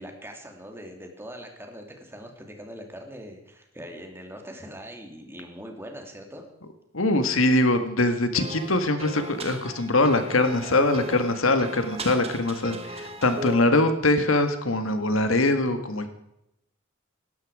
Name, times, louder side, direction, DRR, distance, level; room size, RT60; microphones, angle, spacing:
voice 1, 0.0-6.4, equal, 10° right, 3 dB, 2.9 m, -42 dB
voice 2, 6.9-16.1, left 2 dB, 85° left, 8 dB, 1.8 m, -23 dB
sound 1, 8.3-13.5, right 2 dB, 30° right, 1.7 m, -37 dB
18.0 x 13.0 x 5.0 m, 0.82 s
head